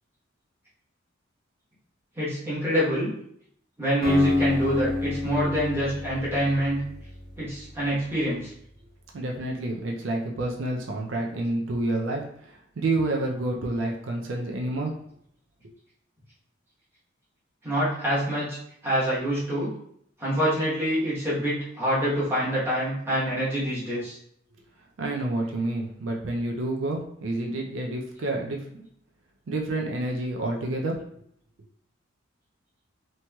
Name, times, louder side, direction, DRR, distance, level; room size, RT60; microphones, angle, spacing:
voice 1, 2.2-3.1 3.8-6.8 7.4-8.5 17.6-18.6 18.8-19.7 20.2-24.2, equal, 10° right, -9 dB, 1.0 m, -26 dB
Acoustic guitar, 4.0-8.1, left 3 dB, 45° right, 1.3 m, -28 dB
voice 2, 9.1-14.9 25.0-28.8 29.5-31.0, right 2 dB, 80° right, 0 dB, 0.5 m, -29 dB
3.0 x 2.7 x 2.2 m, 0.68 s
head